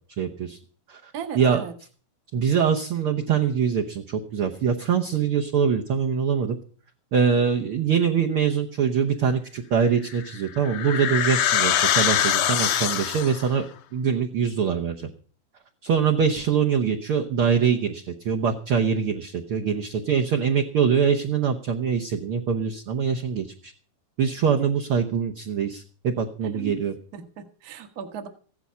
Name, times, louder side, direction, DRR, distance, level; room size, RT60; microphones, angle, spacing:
voice 1, 0.2-0.6 0.9-1.6 2.3-6.6 7.1-13.6 13.9-15.1 15.8-23.7 24.2-26.9, right 7 dB, 65° right, 2 dB, 1.4 m, -23 dB
voice 2, 1.1-1.7 26.4-26.7 27.1-28.3, right 7 dB, 50° right, 6 dB, 1.1 m, -36 dB
sound 1, 10.1-13.5, left 10 dB, 70° left, 1.8 m, -23 dB
15.5 x 11.0 x 5.7 m, 0.43 s
omnidirectional pair, 3.9 m